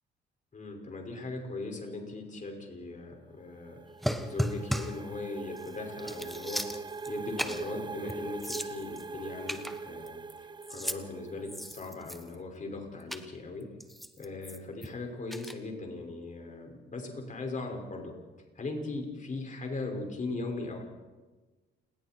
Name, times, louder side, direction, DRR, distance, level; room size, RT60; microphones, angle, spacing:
voice 1, 0.5-3.8 4.2-6.6 7.1-13.7 14.2-18.1 18.6-20.8, left 3 dB, 40° left, 2 dB, 5.8 m, -39 dB
sound 1, 3.3-12.0, right 4 dB, 20° right, 0.6 m, -42 dB
sound 2, 4.0-5.0 5.6-5.7 6.0-7.1 7.4-7.7 8.1-8.2 8.4-9.0 9.5-10.3 10.6-11.0 11.4-12.4 13.1-13.3 13.8-14.9 15.3-15.5, equal, ahead, 1.4 m, -35 dB
29.0 x 20.0 x 4.6 m, 1.2 s
cardioid pair, 90°, 20 cm